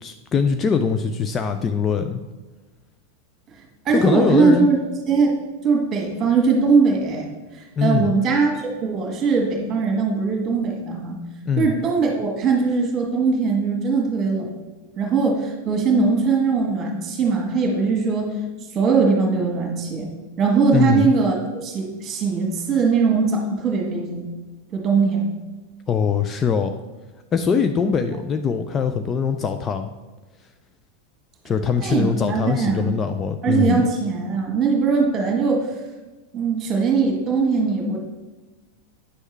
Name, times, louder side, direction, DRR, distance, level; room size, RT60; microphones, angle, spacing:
voice 1, 0.0-2.2 3.9-4.7 7.8-8.1 11.5-11.7 20.7-21.1 25.9-26.7 27.3-29.9 31.4-33.8, left 6 dB, 25° left, 7 dB, 0.4 m, -22 dB
voice 2, 3.9-4.8 5.1-7.3 7.5-8.5 8.8-11.2 11.6-14.5 15.0-18.4 18.7-20.1 20.4-24.2 24.7-25.2 31.8-33.0 33.4-35.7 36.3-38.0, right 4 dB, 25° right, 1 dB, 1.7 m, -20 dB
9.5 x 6.3 x 3.3 m, 1.2 s
figure-of-eight pair, 90°, 0 cm